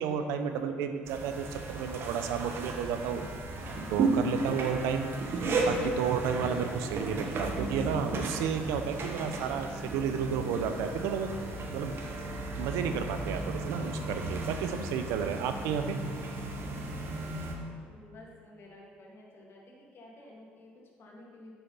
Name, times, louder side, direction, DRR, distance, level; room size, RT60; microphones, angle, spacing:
voice 1, 0.0-3.2 3.9-11.3 11.7-11.9 12.6-16.0, right 7 dB, 85° right, 7 dB, 0.7 m, -32 dB
sound 1, 1.0-17.5, right 2 dB, 55° right, 1.3 m, -34 dB
voice 2, 17.8-21.5, left 1 dB, 55° left, -2 dB, 2.0 m, -52 dB
6.8 x 5.7 x 5.6 m, 2.2 s
supercardioid pair, 75°, 5 cm